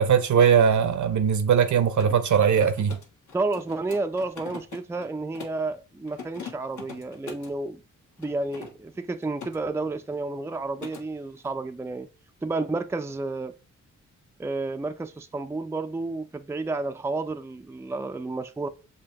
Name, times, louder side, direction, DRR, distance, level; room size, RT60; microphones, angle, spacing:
voice 1, 0.0-3.0, right 7 dB, 65° right, 0.8 m, -20 dB
Mechanisms, 1.6-5.7 6.1-7.6 8.2-9.6 9.9-10.2 10.5-11.1, left 6 dB, 70° left, 1.4 m, -43 dB
voice 2, 3.3-7.8 8.2-12.1 12.4-13.5 14.4-18.7, right 3 dB, 10° right, 0.4 m, -31 dB
6.7 x 2.8 x 2.9 m
cardioid pair, 65°, 31 cm